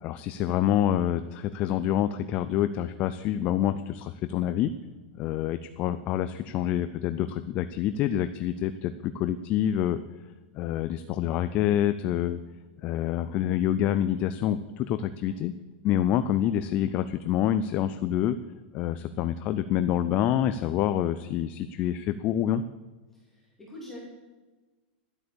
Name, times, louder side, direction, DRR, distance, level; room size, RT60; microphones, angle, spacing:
voice 1, 0.0-4.7 5.2-10.0 10.5-12.4 12.8-15.5 15.8-18.4 18.7-22.6, left 11 dB, 25° left, 11 dB, 0.3 m, -27 dB
voice 2, 23.1-24.0, left 1 dB, 5° left, -6 dB, 2.8 m, -46 dB
12.0 x 8.0 x 6.9 m, 1.2 s
supercardioid pair, 175°, 6 cm